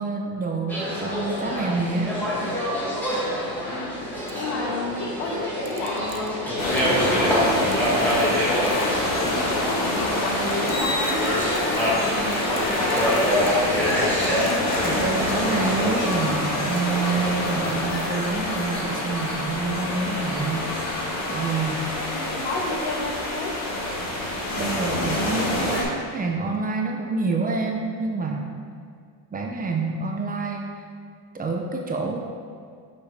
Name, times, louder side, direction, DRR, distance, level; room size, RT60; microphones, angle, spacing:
voice 1, 0.0-2.1 14.8-21.9 24.6-28.6 29.3-30.8 31.3-32.2, right 3 dB, 25° right, 1 dB, 0.5 m, -28 dB
sound 1, 0.7-16.1, equal, 5° left, 1.5 m, -26 dB
voice 2, 3.7-6.3 6.7-13.3 22.0-23.5, left 2 dB, 80° left, 0 dB, 1.2 m, -31 dB
sound 2, 4.3-4.4 5.7-7.0 7.7-8.4 8.6-9.5 10.0-10.1 10.5-12.0 12.3-15.7 16.1-16.9, right 9 dB, 70° right, 0.7 m, -45 dB
sound 3, 6.6-25.8, left 1 dB, 45° left, 1.6 m, -26 dB
5.8 x 5.7 x 3.4 m, 2.2 s
cardioid pair, 130°, 39 cm